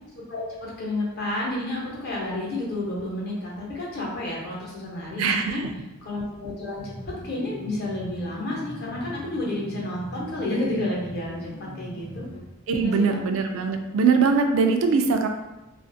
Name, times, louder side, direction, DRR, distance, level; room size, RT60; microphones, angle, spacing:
voice 1, 0.3-5.6 6.0-11.5 11.7-12.2 12.7-13.2, left 1 dB, 55° left, -4 dB, 0.8 m, -30 dB
voice 2, 5.2-5.7 12.7-15.3, right 5 dB, 80° right, 5 dB, 0.3 m, -22 dB
sound 1, 6.8-12.4, equal, 25° left, 0.4 m, -40 dB
2.4 x 2.4 x 2.5 m, 0.97 s
head